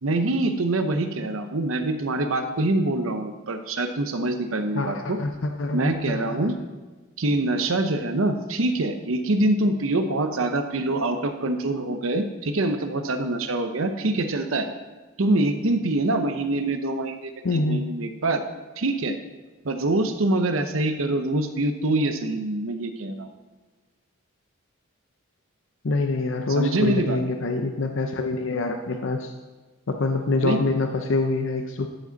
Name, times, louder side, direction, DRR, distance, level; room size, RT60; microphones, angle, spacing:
voice 1, 0.0-5.2 5.7-6.5 7.2-14.7 15.2-18.4 18.8-19.2 19.6-23.3 26.5-27.2 30.4-30.6, right 2 dB, 70° right, 7 dB, 0.8 m, -25 dB
voice 2, 4.7-5.8 6.1-6.5 17.4-17.9 25.8-29.3 29.9-31.9, left 3 dB, 60° left, 4 dB, 0.6 m, -25 dB
12.0 x 5.1 x 4.0 m, 1.3 s
head